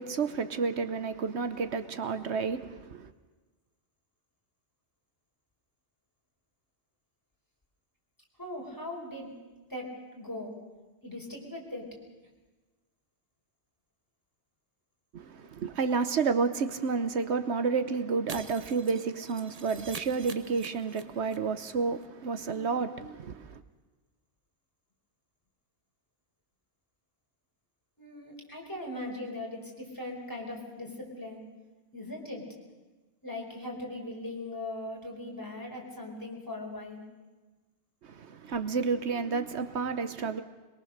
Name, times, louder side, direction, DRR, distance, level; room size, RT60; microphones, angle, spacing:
voice 1, 0.0-3.1 15.1-23.6 38.0-40.4, right 5 dB, 75° right, 1.2 m, -30 dB
voice 2, 8.4-9.4 9.7-10.6 11.0-11.9 28.0-31.4 31.9-32.5 33.2-37.0, left 1 dB, 15° left, 4.7 m, -39 dB
Shatter, 18.3-21.4 21.6-21.7 22.0-22.1, right 4 dB, 35° right, 1.0 m, -45 dB
23.0 x 22.5 x 6.6 m
omnidirectional pair, 1.1 m